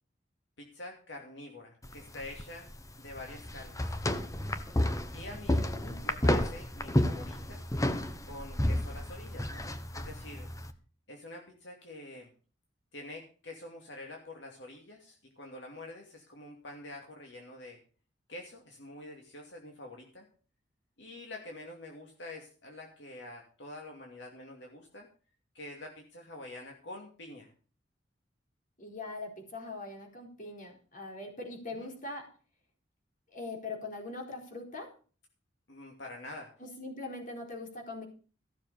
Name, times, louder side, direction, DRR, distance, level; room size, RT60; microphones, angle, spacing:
voice 1, 0.6-2.7 3.0-4.0 5.1-5.7 6.0-7.6 8.2-10.5 11.1-12.3 12.9-17.8 18.3-20.3 21.0-25.1 25.5-27.5 31.7-31.9 35.7-36.5, left 2 dB, 70° left, 1 dB, 2.7 m, -46 dB
sound 1, 1.8-10.7, left 1 dB, 20° left, 1.1 m, -32 dB
voice 2, 5.3-6.0 28.8-32.3 33.3-34.9 36.6-38.1, left 2 dB, 45° left, 1 dB, 4.3 m, -42 dB
15.0 x 6.9 x 6.9 m, 0.39 s
head